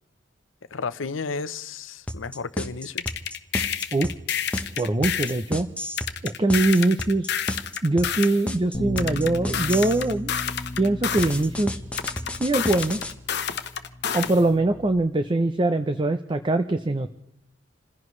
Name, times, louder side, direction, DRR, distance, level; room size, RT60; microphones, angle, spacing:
voice 1, 0.7-3.0, left 4 dB, 85° left, 13 dB, 0.7 m, -32 dB
sound 1, 2.1-10.1 11.2-13.1, equal, 5° left, 1.0 m, -32 dB
sound 2, 3.0-5.4 6.0-8.4 9.0-11.4 12.0-14.4, left 8 dB, 60° left, 1.0 m, -29 dB
voice 2, 4.8-5.7 6.2-7.3 7.8-10.3 10.8-11.8 12.3-13.0 14.1-17.1, right 2 dB, 25° right, 9 dB, 0.6 m, -22 dB
Bass guitar, 8.7-15.0, left 1 dB, 30° left, 1.1 m, -36 dB
28.5 x 16.0 x 3.2 m, 0.75 s
head